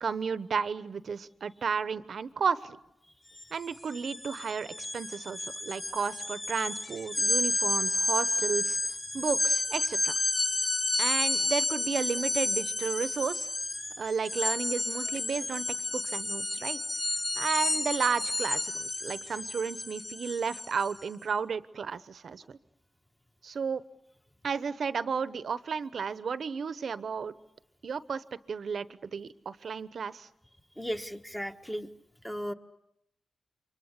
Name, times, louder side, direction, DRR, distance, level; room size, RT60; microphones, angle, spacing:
voice 1, 0.0-2.8 3.5-10.1 11.0-13.5 14.0-15.6 15.9-16.8 17.4-22.6 23.4-23.8 24.4-27.3 27.8-30.3, right 6 dB, 60° right, 15 dB, 1.0 m, -33 dB
sound 1, 3.3-3.4 3.7-21.0, left 2 dB, 20° left, 5.7 m, -31 dB
voice 2, 30.8-31.9 32.2-32.5, equal, 5° left, 6 dB, 1.4 m, -35 dB
29.0 x 24.5 x 8.3 m, 0.81 s
wide cardioid pair, 110°, 0 cm